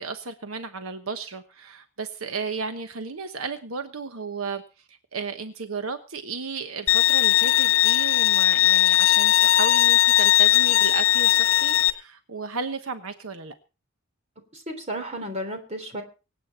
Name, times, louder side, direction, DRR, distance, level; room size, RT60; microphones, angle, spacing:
voice 1, 0.0-4.6 4.9-13.5, right 4 dB, 75° right, 8 dB, 1.1 m, -34 dB
Bowed string instrument, 6.9-11.9, left 14 dB, 65° left, 1.4 m, -19 dB
voice 2, 14.5-16.0, equal, 30° right, 6 dB, 3.5 m, -33 dB
25.0 x 8.7 x 4.3 m, 0.34 s
head